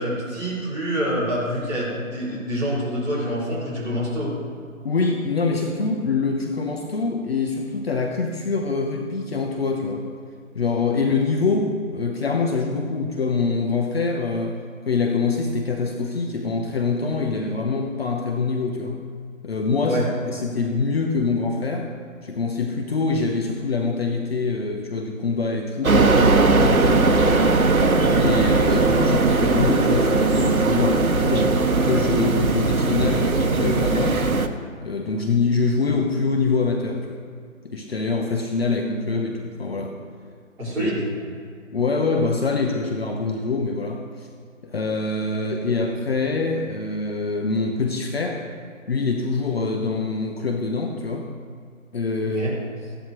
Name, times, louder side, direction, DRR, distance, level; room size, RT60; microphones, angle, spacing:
voice 1, 0.0-4.3 19.9-20.1 40.6-41.1 52.2-52.5, equal, 5° right, -11 dB, 3.1 m, -26 dB
voice 2, 4.8-10.0 10.5-14.6 14.8-19.0 19.4-21.9 22.2-27.5 27.8-31.6 31.8-34.2 34.8-37.2 37.6-39.9 40.6-40.9 41.7-44.3 44.6-48.4 48.9-51.3 51.9-52.5, left 4 dB, 45° left, 2 dB, 0.9 m, -24 dB
sound 1, 25.8-34.5, right 3 dB, 90° right, 1.0 m, -19 dB
14.5 x 11.5 x 3.2 m, 2.2 s
figure-of-eight pair, 155°, 41 cm